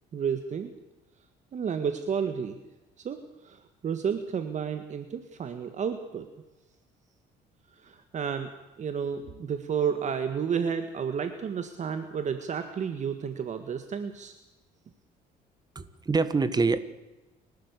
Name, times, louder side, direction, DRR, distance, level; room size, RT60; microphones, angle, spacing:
voice 1, 0.1-0.7 1.5-2.6 3.0-6.3 7.8-8.5 8.8-14.3, right 7 dB, 45° right, 8 dB, 1.7 m, -31 dB
voice 2, 15.8-16.8, right 4 dB, 25° right, 14 dB, 1.7 m, -25 dB
29.0 x 12.5 x 8.3 m, 1.0 s
cardioid pair, 110°, 17 cm